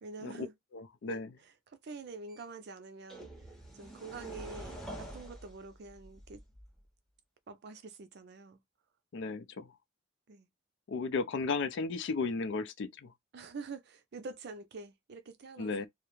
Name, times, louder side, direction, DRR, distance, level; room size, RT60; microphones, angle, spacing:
voice 1, 0.0-0.5 1.1-3.5 3.7-6.4 7.5-8.6 10.3-10.5 13.3-15.9, right 4 dB, 55° right, 0.5 m, -46 dB
voice 2, 0.7-1.3 9.1-9.7 10.9-13.1 15.6-15.9, left 4 dB, 60° left, 0.4 m, -34 dB
sound 1, 2.3-2.4 3.1-6.9, right 1 dB, ahead, 0.6 m, -47 dB
2.4 x 2.0 x 3.0 m
head